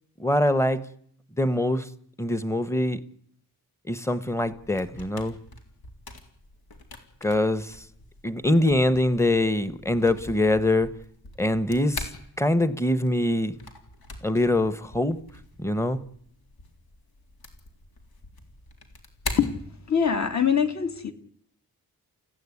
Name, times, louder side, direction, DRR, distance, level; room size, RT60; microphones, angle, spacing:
voice 1, 0.2-0.8 1.4-1.9 2.2-3.0 3.9-5.4 7.2-7.7 8.2-10.9 11.4-12.1 12.4-13.6 14.2-15.2 15.6-16.0, left 1 dB, 10° left, 1.0 m, -23 dB
sound 1, 4.5-20.3, left 3 dB, 90° left, 3.6 m, -43 dB
voice 2, 19.9-21.1, left 7 dB, 50° left, 1.9 m, -23 dB
29.5 x 16.0 x 9.7 m
wide cardioid pair, 170°, 36 cm